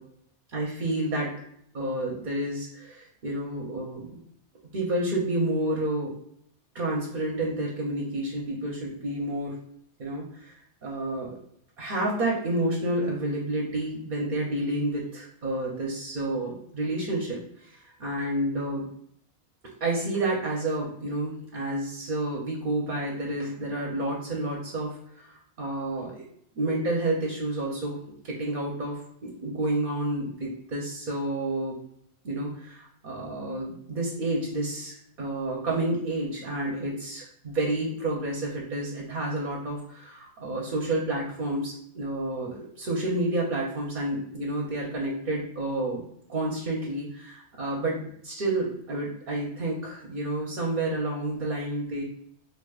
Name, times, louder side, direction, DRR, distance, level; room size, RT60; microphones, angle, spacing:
voice 1, 0.5-1.3 1.7-4.2 4.7-6.1 6.7-9.6 10.0-11.4 11.8-18.9 19.8-26.2 26.6-28.0 28.2-31.8 32.2-52.0, right 1 dB, 50° right, -2 dB, 0.7 m, -30 dB
4.8 x 2.6 x 2.3 m, 0.70 s
omnidirectional pair, 1.1 m